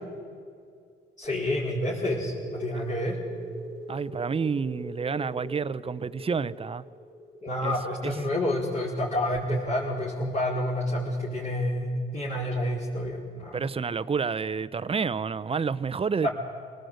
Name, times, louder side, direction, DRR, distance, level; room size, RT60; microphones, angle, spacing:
voice 1, 1.2-3.2 7.4-13.6 16.2-16.3, left 1 dB, 40° left, 4.9 m, -29 dB
sound 1, 1.2-9.6, right 2 dB, 5° left, 3.1 m, -42 dB
voice 2, 3.9-6.8 7.6-7.7 8.0-8.1 13.5-16.3, right 5 dB, 30° right, 0.7 m, -29 dB
25.0 x 18.0 x 8.1 m
cardioid pair, 90°, 20 cm